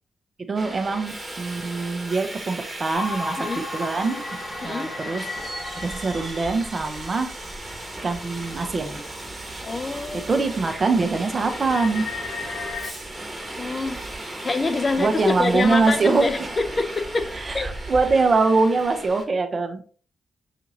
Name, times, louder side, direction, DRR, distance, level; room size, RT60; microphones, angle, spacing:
voice 1, 0.5-3.4 3.7-4.2 4.6-5.2 5.8-7.3 8.0-9.0 10.3-12.0 15.0-16.5 17.4-19.9, right 3 dB, 45° right, 6 dB, 0.8 m, -23 dB
Subway metro underground, 0.6-19.3, right 2 dB, 20° right, 1.4 m, -36 dB
sound 1, 2.9-8.7 9.2-9.3 9.9-10.1 10.5-12.9, left 3 dB, 65° left, 1.0 m, -36 dB
voice 2, 3.4-3.7 4.6-4.9 9.6-10.3 13.6-14.0 14.4-17.3 17.5-17.7, left 3 dB, 45° left, 10 dB, 0.5 m, -26 dB
5.9 x 2.8 x 2.7 m, 0.43 s
hypercardioid pair, 45°, 0 cm